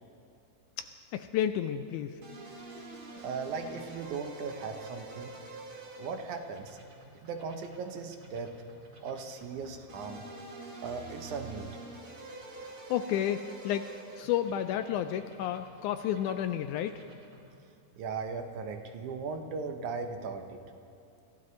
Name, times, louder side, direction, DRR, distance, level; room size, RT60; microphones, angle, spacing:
voice 1, 0.8-2.2 12.9-13.9 14.2-17.0, left 10 dB, 80° left, 9 dB, 1.8 m, -31 dB
sound 1, 2.2-17.6, right 2 dB, 40° right, 3.2 m, -48 dB
voice 2, 3.2-5.3 6.0-6.8 7.2-8.5 9.0-10.2 10.7-11.8 18.0-20.6, right 5 dB, 70° right, 6 dB, 2.2 m, -38 dB
25.5 x 15.0 x 3.2 m, 2.6 s
omnidirectional pair, 3.8 m